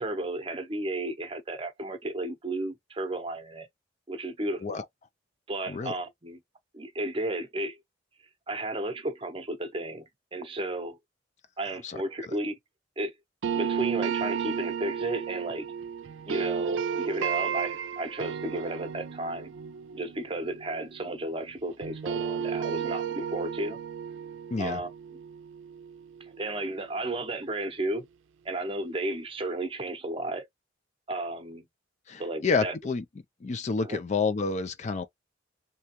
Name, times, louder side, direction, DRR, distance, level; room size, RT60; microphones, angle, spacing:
voice 1, 0.0-3.7 4.1-4.8 5.5-6.4 6.7-7.8 8.5-11.0 11.6-12.5 13.0-13.1 13.5-15.7 16.3-19.5 19.9-23.8 24.6-24.9 26.2-28.1 28.4-30.5 31.1-31.6 32.2-32.8 33.8-34.0, right 2 dB, 30° right, 0.7 m, -33 dB
sound 1, 13.4-21.5 21.8-26.8, right 7 dB, 90° right, 0.4 m, -33 dB
voice 2, 24.5-24.8 32.1-33.0 33.4-35.0, left 4 dB, 40° left, 0.4 m, -29 dB
3.3 x 2.7 x 3.0 m
head